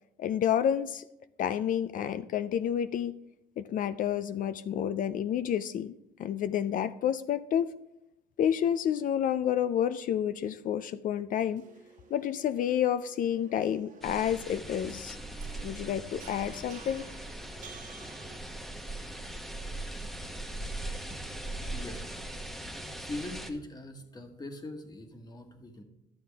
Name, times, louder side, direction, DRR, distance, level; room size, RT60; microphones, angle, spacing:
voice 1, 0.2-1.1 1.4-3.2 3.6-5.9 6.2-7.8 8.4-11.6 12.1-15.2 15.6-17.0, left 9 dB, 55° left, 14 dB, 0.4 m, -29 dB
sound 1, 11.4-18.4, right 5 dB, 45° right, 1.5 m, -53 dB
sound 2, 14.0-23.5, right 1 dB, ahead, 0.9 m, -40 dB
voice 2, 21.7-22.0 22.5-22.7 23.0-25.8, left 2 dB, 25° left, 5 dB, 1.4 m, -42 dB
12.0 x 7.5 x 3.5 m, 0.86 s
cardioid pair, 110°, 17 cm